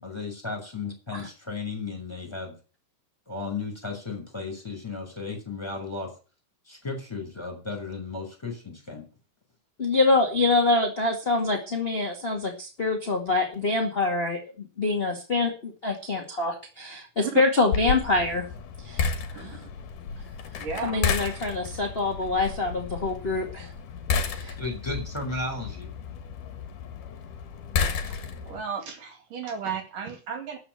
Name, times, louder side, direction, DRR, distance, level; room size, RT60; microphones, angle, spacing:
voice 1, 0.0-2.6 3.3-6.1 6.7-9.0 24.6-25.9, left 3 dB, 5° left, 4 dB, 6.0 m, -34 dB
voice 2, 9.8-14.4 14.8-18.4 18.8-19.0 19.3-19.6 20.8-23.7 24.3-24.5, left 3 dB, 25° left, 2 dB, 1.5 m, -25 dB
sound 1, 17.7-28.6, left 6 dB, 60° left, 2.9 m, -32 dB
voice 3, 19.3-19.7 20.6-21.0 28.1-28.2 28.5-30.6, right 6 dB, 60° right, 5 dB, 3.6 m, -34 dB
13.5 x 6.2 x 9.2 m, 0.35 s
omnidirectional pair, 4.3 m